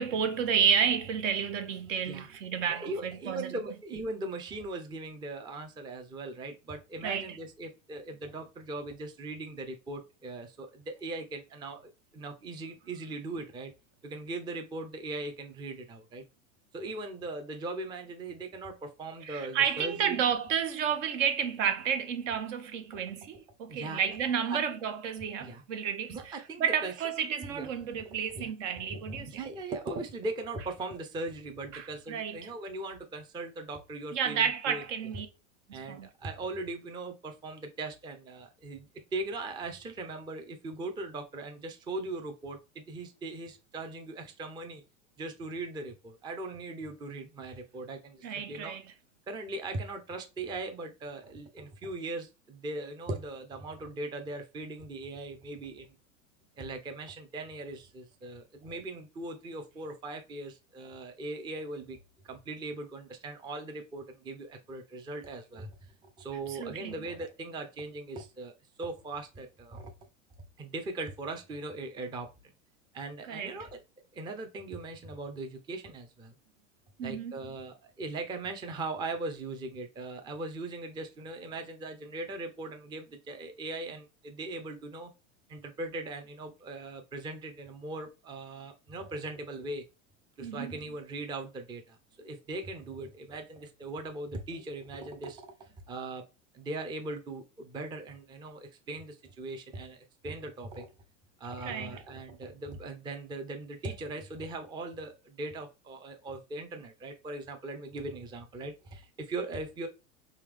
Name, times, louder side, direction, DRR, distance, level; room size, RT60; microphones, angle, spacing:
voice 1, 0.0-3.5 7.0-7.4 19.2-29.4 31.7-32.5 34.1-35.3 35.7-36.1 48.2-48.8 66.5-66.9 73.3-73.5 77.0-77.3 90.4-90.7 101.6-102.0, right 7 dB, 65° right, 0.8 m, -31 dB
voice 2, 2.7-13.7 14.0-16.2 16.7-20.2 22.9-23.0 23.7-24.1 24.5-24.6 25.4-25.6 26.1-26.9 27.5-28.0 28.3-28.5 28.9-34.8 35.7-44.8 45.2-48.8 49.3-55.9 56.6-62.0 62.2-68.5 68.8-69.9 70.6-72.3 72.9-73.8 74.1-76.3 77.0-85.1 85.5-89.8 90.4-96.2 96.5-100.9 101.4-109.9, right 2 dB, 10° right, 0.4 m, -39 dB
3.4 x 2.8 x 3.3 m
hypercardioid pair, 100°, 40 cm